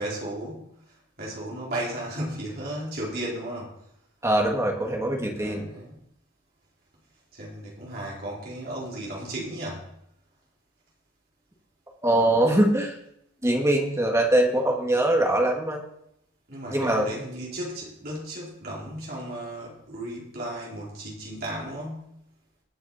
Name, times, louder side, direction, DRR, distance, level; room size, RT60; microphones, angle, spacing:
voice 1, 0.0-3.7 5.4-5.9 7.3-9.9 16.5-22.1, right 1 dB, 50° right, -5 dB, 4.1 m, -35 dB
voice 2, 4.2-5.7 12.0-12.9 13.4-15.8 16.7-17.1, right 1 dB, 15° right, 1 dB, 1.8 m, -22 dB
19.5 x 6.6 x 4.2 m, 0.72 s
head